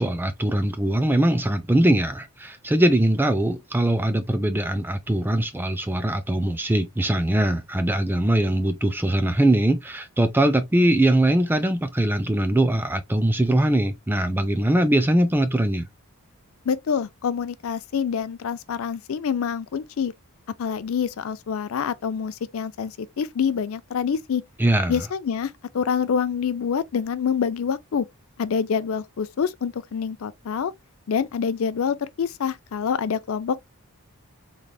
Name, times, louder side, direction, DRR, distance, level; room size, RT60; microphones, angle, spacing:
voice 1, 0.0-15.8 24.6-25.0, right 1 dB, 10° right, 0.4 m, -21 dB
voice 2, 16.7-20.1 20.6-24.4 24.9-28.1 28.4-30.7 31.1-33.6, left 7 dB, 65° left, 0.4 m, -26 dB
3.8 x 3.3 x 2.2 m
head